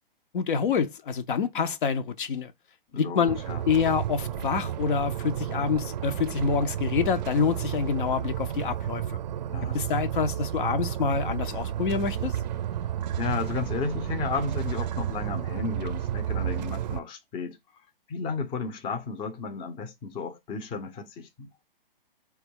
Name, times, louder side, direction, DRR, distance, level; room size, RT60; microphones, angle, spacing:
voice 1, 0.3-2.5 2.9-3.4 3.7-9.0 9.7-12.4, left 6 dB, 60° left, 0.6 m, -27 dB
voice 2, 2.9-3.6 9.5-9.8 13.2-17.6 18.1-21.5, left 5 dB, 15° left, 0.6 m, -33 dB
sound 1, 3.3-17.0, right 10 dB, 50° right, 0.5 m, -32 dB
4.6 x 2.3 x 4.4 m
hypercardioid pair, 125°, 29 cm